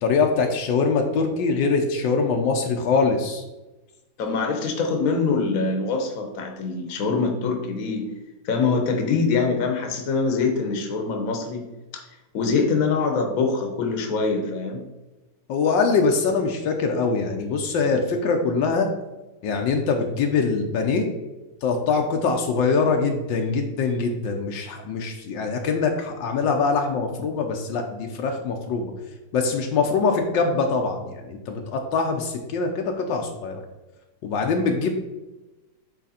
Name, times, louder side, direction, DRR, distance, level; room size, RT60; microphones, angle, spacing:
voice 1, 0.0-3.4 15.5-18.9 19.4-21.1 21.6-28.9 29.3-33.6 34.2-34.9, left 4 dB, 80° left, 3 dB, 1.4 m, -23 dB
voice 2, 4.2-8.1 8.4-11.6 11.9-12.0 12.3-14.8, left 4 dB, 55° left, 3 dB, 1.3 m, -24 dB
8.3 x 3.4 x 4.2 m, 1.0 s
omnidirectional pair, 2.0 m